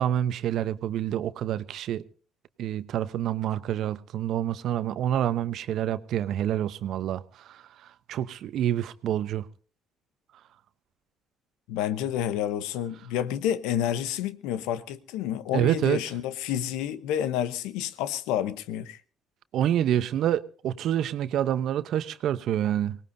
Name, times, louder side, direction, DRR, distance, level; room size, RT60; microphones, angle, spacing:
voice 1, 0.0-2.0 2.6-9.5 15.5-16.0 19.5-23.0, right 11 dB, 70° right, 0.9 m, -27 dB
voice 2, 11.7-19.0, left 10 dB, 85° left, 0.8 m, -29 dB
24.0 x 18.5 x 2.7 m
supercardioid pair, 65°, 0 cm